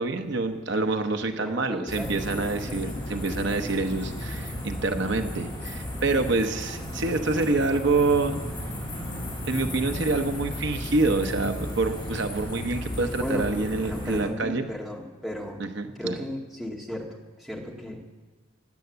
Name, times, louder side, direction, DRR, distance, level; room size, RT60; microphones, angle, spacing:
voice 1, 0.0-8.4 9.4-14.7 15.6-16.2, right 3 dB, 60° right, 6 dB, 0.9 m, -26 dB
voice 2, 1.4-2.3 2.7-3.1 13.2-15.6 16.0-18.1, left 1 dB, ahead, -2 dB, 1.9 m, -35 dB
sound 1, 1.9-14.2, equal, 20° left, 6.0 m, -34 dB
16.5 x 10.5 x 8.0 m, 1.3 s
head